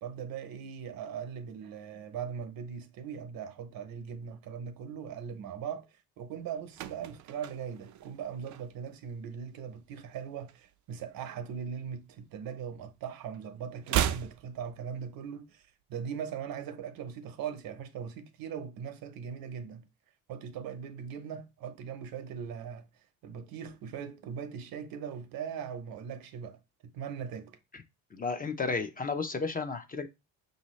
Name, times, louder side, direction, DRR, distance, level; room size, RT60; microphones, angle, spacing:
voice 1, 0.0-5.9 6.2-19.9 20.3-22.8 23.2-27.6, right 7 dB, 70° right, 0.8 m, -40 dB
sound 1, 6.4-9.1 9.3-9.6 9.9-11.4 11.7-13.0 13.3-15.4 15.6-15.7, right 11 dB, 55° right, 0.4 m, -36 dB
voice 2, 28.1-30.1, left 4 dB, 25° left, 0.5 m, -33 dB
5.4 x 2.7 x 3.1 m
cardioid pair, 95°, 36 cm